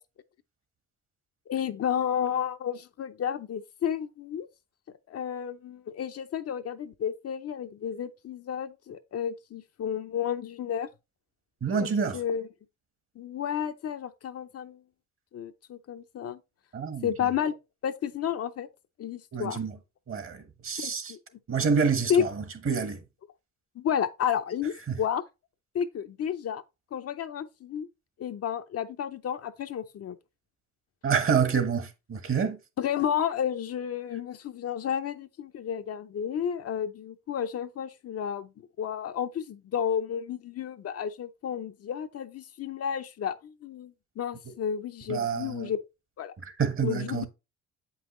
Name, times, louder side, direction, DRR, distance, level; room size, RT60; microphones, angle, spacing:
voice 1, 1.5-4.5 5.1-10.9 12.1-12.5 13.2-14.8 15.3-16.4 17.0-17.6 17.8-18.7 19.0-19.6 20.8-21.2 22.1-22.2 23.8-25.2 25.7-26.6 26.9-27.9 28.2-30.2 32.8-38.5 38.8-45.8 46.2-46.3 46.8-47.3, left 8 dB, 55° left, 0.6 m, -31 dB
voice 2, 11.6-12.2 16.7-17.3 19.3-19.8 20.1-21.1 21.5-23.0 24.9-25.0 31.0-32.6 45.1-45.7 46.4-47.3, right 6 dB, 45° right, 1.3 m, -28 dB
7.8 x 5.5 x 3.1 m
cardioid pair, 90°, 30 cm